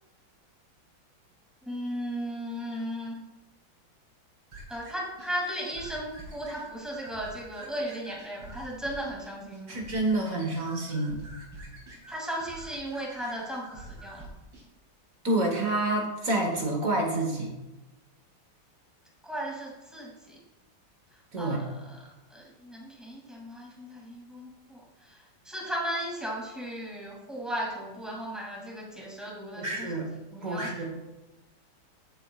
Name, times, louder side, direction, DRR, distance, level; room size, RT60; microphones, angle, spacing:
voice 1, 1.6-3.2 4.7-9.8 12.1-14.3 19.2-20.4 21.4-22.0 22.3-29.9 30.3-30.8, equal, ahead, -4 dB, 2.4 m, -36 dB
sound 1, 4.5-14.7, right 1 dB, 75° right, 3.8 m, -47 dB
voice 2, 9.7-11.2 15.2-17.5 21.3-21.6 29.6-30.1 30.4-30.9, right 2 dB, 45° right, 1 dB, 1.7 m, -28 dB
14.5 x 7.1 x 2.4 m, 1.0 s
omnidirectional pair, 2.1 m